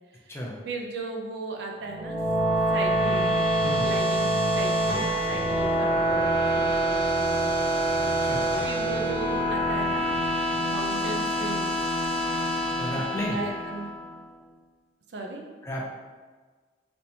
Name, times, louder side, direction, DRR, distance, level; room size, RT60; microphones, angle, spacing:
voice 1, 0.7-2.2 2.7-7.7 8.6-10.1 10.6-11.7 12.9-13.9 15.1-15.4, right 3 dB, 80° right, 1 dB, 0.5 m, -36 dB
sound 1, 1.8-14.2, right 1 dB, 30° right, 1.4 m, -26 dB
voice 2, 12.8-13.4 15.6-15.8, equal, 15° left, -3 dB, 0.5 m, -32 dB
3.4 x 2.8 x 2.7 m, 1.4 s
head